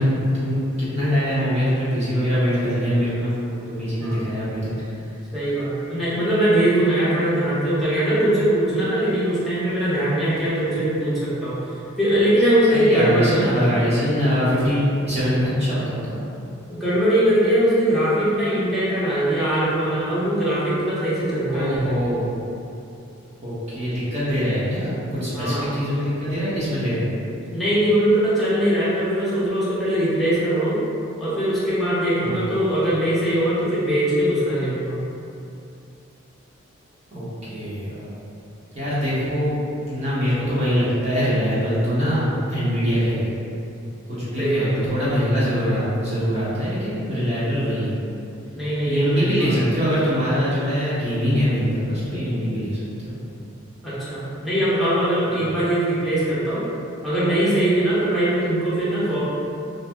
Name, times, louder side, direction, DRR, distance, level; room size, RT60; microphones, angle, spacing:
voice 1, 0.0-4.7 12.7-16.2 21.5-22.2 23.4-27.1 32.2-32.4 37.1-38.1 38.7-39.6 39.9-43.3 44.1-48.0 48.8-53.1 55.4-55.5, equal, 30° right, -11 dB, 0.8 m, -23 dB
voice 2, 5.3-11.6 12.0-13.8 16.7-21.9 25.3-25.7 27.5-30.8 31.2-35.0 44.4-44.9 48.5-49.6 53.8-56.6 57.0-59.2, right 1 dB, ahead, -11 dB, 0.7 m, -21 dB
2.7 x 2.0 x 3.3 m, 2.6 s
head